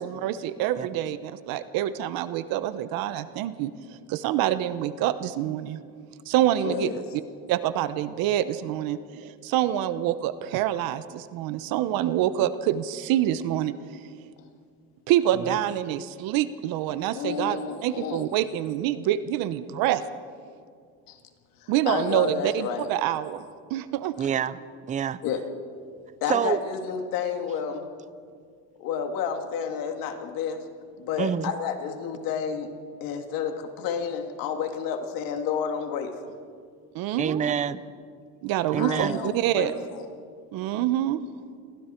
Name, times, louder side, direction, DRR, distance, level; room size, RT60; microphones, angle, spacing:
voice 1, 0.0-5.8 6.3-6.9 7.5-14.0 15.1-20.0 21.7-23.4 23.7-24.1 36.9-37.4 38.4-39.7 40.5-41.2, right 12 dB, 80° right, 13 dB, 1.0 m, -26 dB
voice 2, 6.5-7.0 17.1-18.2 21.1-21.2 21.6-22.9 25.2-25.4 26.2-27.9 28.8-30.6 31.0-32.7 33.0-36.3 38.8-40.0, left 7 dB, 75° left, 5 dB, 2.4 m, -30 dB
voice 3, 24.2-24.6 24.9-25.2 26.3-26.6 31.2-31.5 37.2-37.8 38.7-39.2, right 8 dB, 20° right, 16 dB, 0.5 m, -27 dB
29.0 x 22.5 x 4.5 m, 2.2 s
cardioid pair, 145°, 35 cm